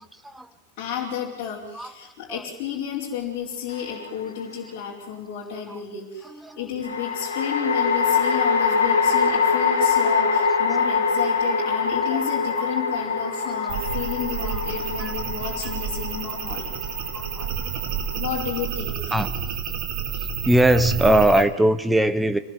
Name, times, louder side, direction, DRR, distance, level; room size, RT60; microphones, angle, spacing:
voice 1, 0.8-16.7 18.1-19.1, left 8 dB, 40° left, -5 dB, 4.6 m, -32 dB
sound 1, 3.7-4.4 6.8-18.2, left 5 dB, 65° left, 2.6 m, -24 dB
voice 2, 6.2-6.7 9.3-9.4 12.1-12.2 12.6-12.7 14.4-14.6 15.0-15.1 15.6-15.8 17.1-17.5 19.1-19.3 20.4-22.4, right 1 dB, 5° right, 10 dB, 1.4 m, -21 dB
sound 2, 13.7-21.4, right 8 dB, 45° right, 3.5 m, -30 dB
26.0 x 19.0 x 7.7 m, 0.93 s
figure-of-eight pair, 90°, 0 cm